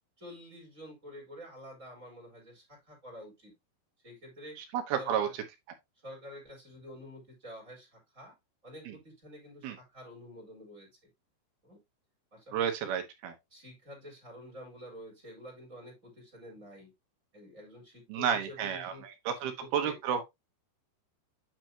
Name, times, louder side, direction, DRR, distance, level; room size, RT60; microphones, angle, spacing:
voice 1, 0.2-3.5 4.0-4.6 5.0-5.3 6.0-8.3 8.6-10.9 11.6-11.8 12.3-12.9 13.5-16.9 17.3-19.1 19.3-20.0, equal, 15° right, 4.4 m, -49 dB
voice 2, 4.7-5.3 9.6-9.8 12.5-13.3 18.1-18.9 19.3-20.2, right 8 dB, 70° right, 2.6 m, -31 dB
9.2 x 5.9 x 2.8 m
omnidirectional pair, 5.5 m